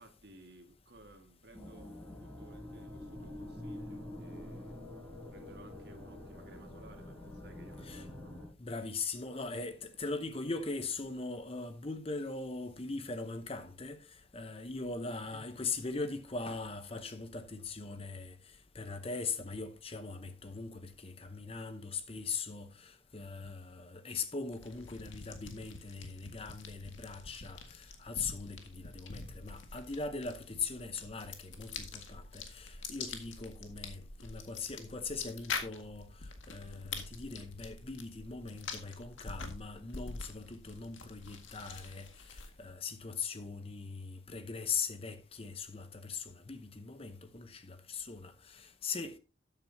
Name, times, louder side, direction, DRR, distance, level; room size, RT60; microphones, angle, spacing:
voice 1, 0.0-4.8 5.3-8.4 15.1-15.4, right 1 dB, 55° right, 1.9 m, -58 dB
sound 1, 1.5-8.5, left 1 dB, 10° left, 4.5 m, -46 dB
voice 2, 8.6-18.4 18.7-49.2, left 4 dB, 30° left, 0.8 m, -40 dB
sound 2, 24.5-42.7, left 4 dB, 75° left, 1.8 m, -46 dB
13.0 x 9.0 x 2.8 m
head